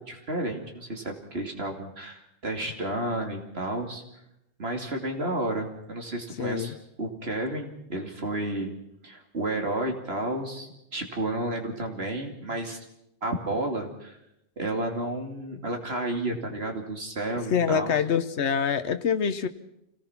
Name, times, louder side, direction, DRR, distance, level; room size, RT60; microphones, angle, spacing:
voice 1, 0.1-4.0 4.6-8.7 9.0-12.8 13.2-14.2 14.6-17.9, right 1 dB, 65° right, 3 dB, 3.0 m, -31 dB
voice 2, 6.4-6.7 17.5-19.5, left 7 dB, 85° left, 10 dB, 1.2 m, -25 dB
26.5 x 18.0 x 5.9 m, 0.81 s
omnidirectional pair, 1.1 m